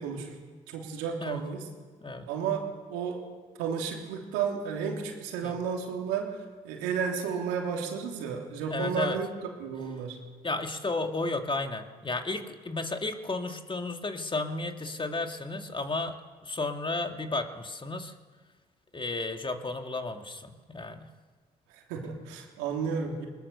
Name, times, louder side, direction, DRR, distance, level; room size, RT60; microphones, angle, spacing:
voice 1, 0.0-1.7 2.3-3.2 3.6-9.3 9.6-10.2 21.7-23.3, right 6 dB, 85° right, 1 dB, 3.2 m, -33 dB
voice 2, 8.7-9.2 10.4-16.2 16.4-18.1 18.9-21.1 22.8-22.9, left 2 dB, 30° left, 5 dB, 2.4 m, -33 dB
20.5 x 20.0 x 6.9 m, 1.5 s
hypercardioid pair, 50°, 18 cm